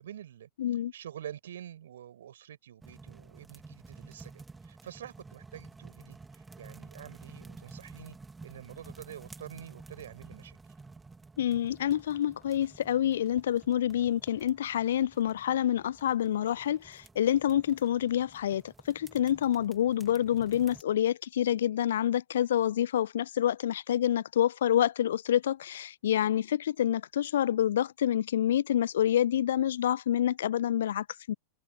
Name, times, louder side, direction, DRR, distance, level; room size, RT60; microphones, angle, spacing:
voice 1, 0.0-8.2 8.4-10.6, right 10 dB, 60° right, 5.8 m, -47 dB
voice 2, 0.6-0.9 11.4-18.6 18.9-31.3, left 11 dB, 60° left, 0.5 m, -27 dB
sound 1, 2.8-20.8, right 3 dB, 10° right, 2.4 m, -52 dB
figure-of-eight pair, 90°, 0 cm